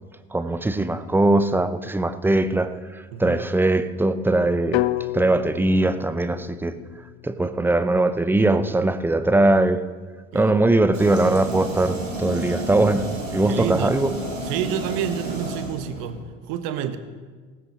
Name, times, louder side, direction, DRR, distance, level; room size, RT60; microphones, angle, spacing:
voice 1, 0.3-4.8 5.1-6.7 7.2-9.8 10.3-14.1, right 2 dB, 5° right, 12 dB, 0.6 m, -21 dB
sound 1, 4.7-8.8, left 18 dB, 55° left, 0.6 m, -31 dB
voice 2, 10.3-10.7 13.5-14.0 14.4-16.2 16.5-17.0, right 10 dB, 55° right, 10 dB, 1.2 m, -29 dB
sound 2, 10.9-16.2, right 1 dB, 80° right, 3.5 m, -31 dB
18.0 x 15.5 x 3.0 m, 1.5 s
figure-of-eight pair, 70°, 38 cm